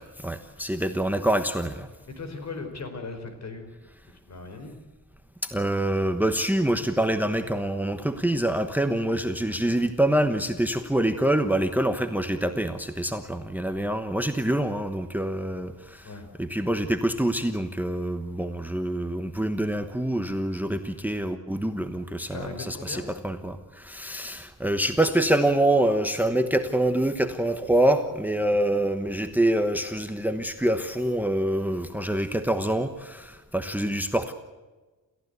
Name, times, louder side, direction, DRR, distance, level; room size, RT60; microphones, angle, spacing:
voice 1, 0.0-1.9 5.4-16.1 16.4-34.3, right 1 dB, 5° right, 9 dB, 1.1 m, -26 dB
voice 2, 2.1-3.7 4.3-4.8 16.0-16.3 22.2-23.1, left 3 dB, 55° left, 6 dB, 4.7 m, -38 dB
29.0 x 15.5 x 8.2 m, 1.2 s
wide cardioid pair, 160°, 33 cm